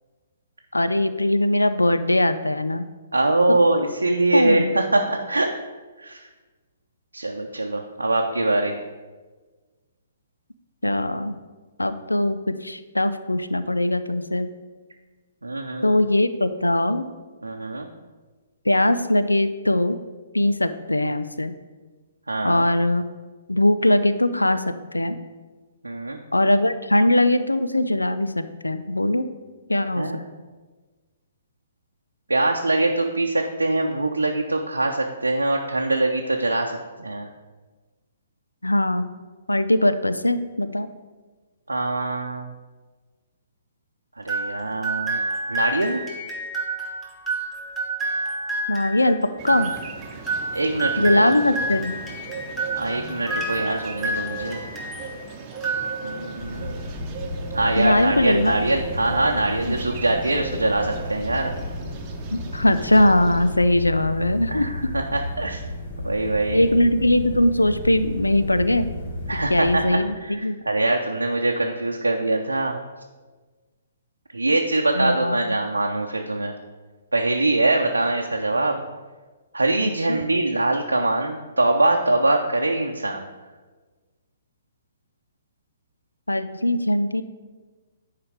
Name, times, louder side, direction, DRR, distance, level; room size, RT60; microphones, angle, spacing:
voice 1, 0.7-2.9 3.5-3.6 4.3-4.7 10.8-11.4 11.8-14.5 15.8-17.1 18.7-20.0 20.3-21.5 22.4-23.1 23.5-24.6 24.9-25.2 26.3-29.3 29.7-30.1 38.6-39.1 39.5-40.9 48.7-49.2 49.4-49.7 51.0-51.9 57.8-58.6 59.7-59.8 62.3-64.7 66.5-68.9 69.5-70.6 75.0-75.5 80.1-80.2 86.3-87.2, left 1 dB, 90° left, 11 dB, 0.5 m, -21 dB
voice 2, 3.1-5.5 6.0-6.3 7.1-8.8 15.4-15.9 17.4-17.9 22.3-22.7 25.8-26.2 30.0-30.3 32.3-37.3 41.7-42.5 44.2-45.2 45.5-46.0 50.5-51.3 52.7-54.7 56.0-56.8 57.5-61.5 64.5-65.6 66.0-66.6 69.3-72.8 74.3-76.5 77.1-78.8 79.5-83.3, right 2 dB, 85° right, 1 dB, 0.7 m, -23 dB
sound 1, 44.3-55.1 55.5-56.4, right 2 dB, 5° right, 1.9 m, -29 dB
sound 2, 49.4-63.5, right 3 dB, 30° right, 1.0 m, -38 dB
sound 3, 56.4-69.9, left 1 dB, 50° left, 2.0 m, -33 dB
10.0 x 4.9 x 5.0 m, 1.3 s
figure-of-eight pair, 125°, 0 cm